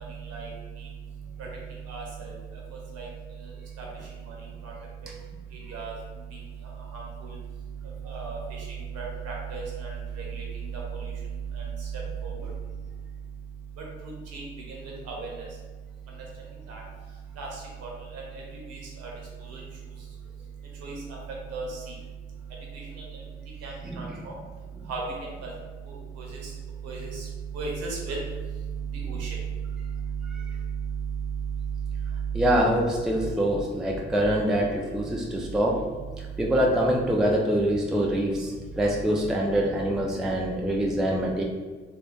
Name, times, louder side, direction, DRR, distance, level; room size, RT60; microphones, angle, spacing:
voice 1, 1.9-2.3 3.0-3.1 3.8-3.9 4.3-4.4 4.6-4.7 5.7-5.9 6.9-7.0 8.0-8.4 8.9-9.9 10.3-10.4 11.5-11.6 12.2-12.3 14.3-14.4 15.1-15.3 16.7-16.8 17.4-17.5 17.8-18.4 18.7-19.1 19.5-19.6 20.8-20.9 21.5-21.8 23.6-24.3 24.9-25.0 25.4-25.5 26.2-26.5 26.8-27.3 27.5-28.2 29.0-29.4, right 4 dB, 55° right, -2 dB, 1.1 m, -35 dB
voice 2, 23.8-24.2 30.3-30.5 32.3-35.9 36.4-41.4, equal, ahead, -1 dB, 0.4 m, -25 dB
3.3 x 2.5 x 3.5 m, 1.4 s
figure-of-eight pair, 45°, 31 cm